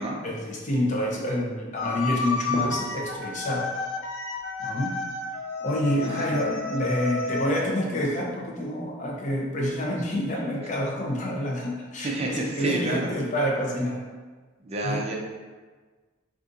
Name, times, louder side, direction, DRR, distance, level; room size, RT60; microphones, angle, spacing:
voice 1, 0.2-3.7 4.6-5.0 5.6-14.0 14.8-15.0, left 1 dB, 35° left, -2 dB, 0.5 m, -28 dB
sound 1, 1.8-7.7, left 3 dB, 90° left, 0.4 m, -32 dB
voice 2, 12.0-13.1 14.6-15.1, right 2 dB, 30° right, 0 dB, 0.4 m, -29 dB
2.6 x 2.4 x 3.7 m, 1.4 s
head